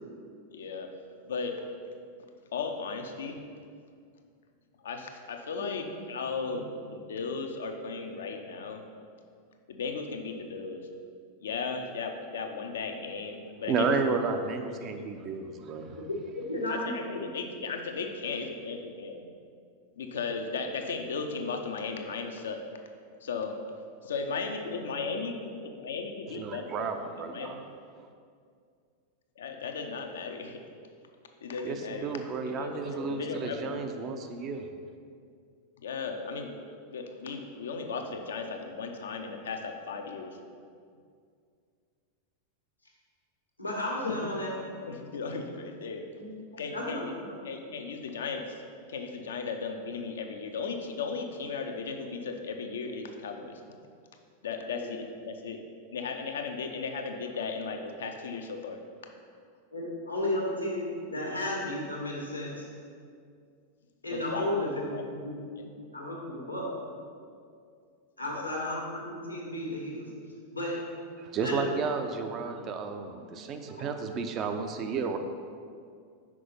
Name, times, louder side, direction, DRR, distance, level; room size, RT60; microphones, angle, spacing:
voice 1, 0.5-0.9 1.3-1.6 2.5-3.4 4.8-8.8 9.7-10.9 11.4-14.0 14.5-14.9 16.7-19.2 20.0-22.6 23.2-23.6 24.0-26.9 27.3-27.6 29.4-30.6 31.4-32.2 32.5-34.0 34.5-34.6 35.8-36.5 36.9-40.4 44.0-44.3 44.8-46.1 46.6-47.1 47.4-48.4 48.9-53.6 54.4-55.6 55.9-58.8 64.1-65.0 68.3-68.5, left 4 dB, 65° left, 4 dB, 0.7 m, -36 dB
voice 2, 13.7-16.0 26.3-27.6 31.6-34.7 71.2-75.2, right 5 dB, 30° right, 6 dB, 0.6 m, -32 dB
voice 3, 16.0-17.5 43.6-44.5 46.2-47.3 54.8-54.9 59.7-62.7 64.0-65.4 65.9-66.8 68.2-70.1 70.5-70.8 71.4-71.8 72.5-72.6 73.1-73.2 73.7-73.9, left 1 dB, 85° left, -3 dB, 1.5 m, -34 dB
6.0 x 5.0 x 5.6 m, 2.2 s
figure-of-eight pair, 90°, 0 cm